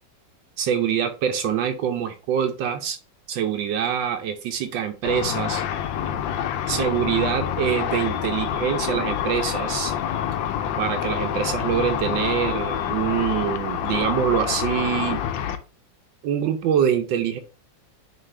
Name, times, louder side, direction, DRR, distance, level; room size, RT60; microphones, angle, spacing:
voice 1, 0.6-3.0 3.3-5.6 6.7-9.9 10.8-15.2 16.2-17.4, right 8 dB, 80° right, 6 dB, 1.3 m, -24 dB
Car / Traffic noise roadway noise / Engine, 5.0-15.6, left 9 dB, 90° left, 1.4 m, -27 dB
9.2 x 3.2 x 3.2 m, 0.35 s
omnidirectional pair, 2.0 m